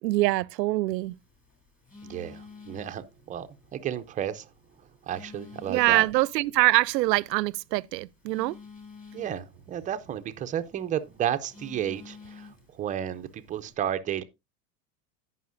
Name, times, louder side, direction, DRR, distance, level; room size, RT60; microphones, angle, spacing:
voice 1, 0.0-1.1 5.7-8.6, right 18 dB, 85° right, 0.5 m, -24 dB
Telephone, 0.9-13.7, left 4 dB, 15° left, 2.9 m, -51 dB
voice 2, 2.0-4.5 5.0-6.1 9.1-14.2, right 10 dB, 15° right, 0.4 m, -32 dB
17.0 x 5.7 x 2.5 m
hypercardioid pair, 115°, 49 cm